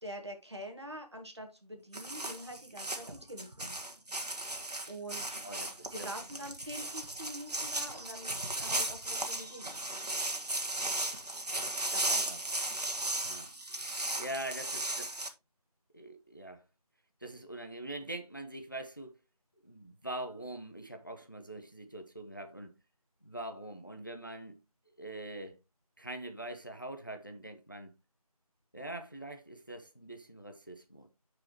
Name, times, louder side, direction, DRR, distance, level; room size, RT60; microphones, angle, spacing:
voice 1, 0.0-3.7 4.9-9.8 11.9-12.3, equal, 45° right, 1.6 m, -45 dB
sound 1, 1.9-15.3, right 2 dB, 90° right, 1.6 m, -36 dB
voice 2, 5.4-6.1 12.1-12.4 13.2-13.5 14.2-15.2 15.9-16.6 17.2-19.1 19.6-22.7 23.2-24.6 25.0-25.6 26.0-27.9 28.7-31.1, right 1 dB, 30° left, 0.7 m, -43 dB
10.0 x 4.8 x 3.0 m
figure-of-eight pair, 180°, 20 cm